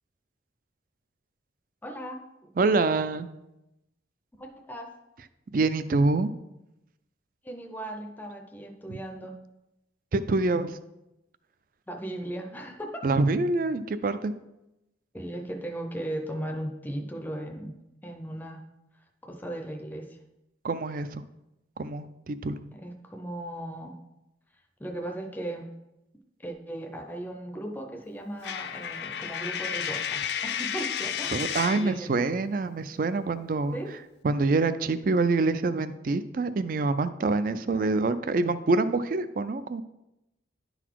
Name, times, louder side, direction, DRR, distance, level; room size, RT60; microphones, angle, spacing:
voice 1, 1.8-2.2 4.4-4.9 7.4-9.4 11.9-13.1 15.1-17.7 18.0-18.6 19.2-20.2 22.7-23.9 24.8-25.7 26.4-32.2 33.7-33.9 37.6-37.9, right 1 dB, 10° left, 3 dB, 0.6 m, -37 dB
voice 2, 2.6-3.3 5.5-6.3 8.9-9.0 10.1-10.8 13.0-14.3 20.6-21.2 21.8-22.6 31.3-33.8 34.2-39.8, right 3 dB, 45° right, 13 dB, 0.4 m, -26 dB
Coin (dropping), 28.4-31.9, left 8 dB, 60° left, 0.4 m, -32 dB
10.5 x 4.0 x 4.6 m, 0.92 s
head